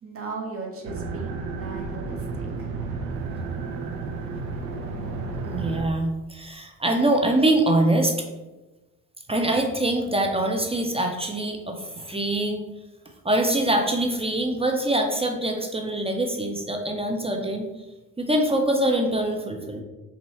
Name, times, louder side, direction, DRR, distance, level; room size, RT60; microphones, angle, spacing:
voice 1, 0.0-2.7, right 3 dB, 30° right, 1 dB, 1.2 m, -37 dB
sound 1, 0.8-5.8, right 4 dB, 65° right, 0.7 m, -32 dB
voice 2, 5.5-8.1 9.3-12.6 13.2-17.7 18.2-19.8, right 1 dB, 15° right, 2 dB, 0.6 m, -24 dB
5.3 x 2.6 x 3.1 m, 1.1 s
figure-of-eight pair, 45°, 45 cm